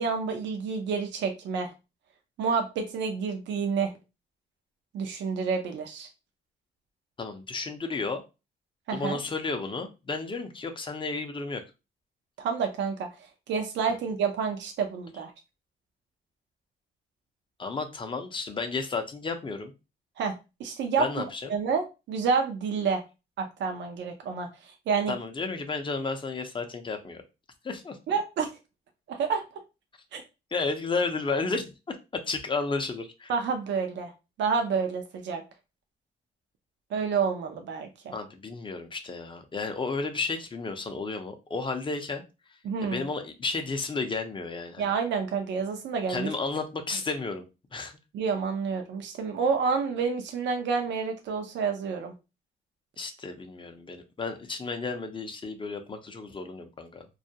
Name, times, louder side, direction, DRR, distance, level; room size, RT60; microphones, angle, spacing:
voice 1, 0.0-1.7 2.4-3.9 4.9-6.1 8.9-9.2 12.4-13.1 13.5-15.3 20.2-20.3 20.6-21.1 21.5-23.0 23.4-25.1 28.1-28.5 29.1-29.4 30.1-30.2 33.3-34.1 34.4-35.4 36.9-38.1 42.6-43.1 44.8-46.3 48.1-52.1, right 5 dB, 65° right, 4 dB, 0.5 m, -29 dB
voice 2, 7.2-8.2 8.9-11.6 17.6-19.7 21.0-21.5 25.1-27.2 27.6-28.0 30.5-31.7 32.1-33.3 38.1-42.2 42.8-44.9 46.1-47.4 47.7-47.9 53.0-57.1, left 4 dB, 25° left, 6 dB, 0.5 m, -32 dB
2.3 x 2.1 x 2.7 m, 0.28 s
cardioid pair, 90°, 20 cm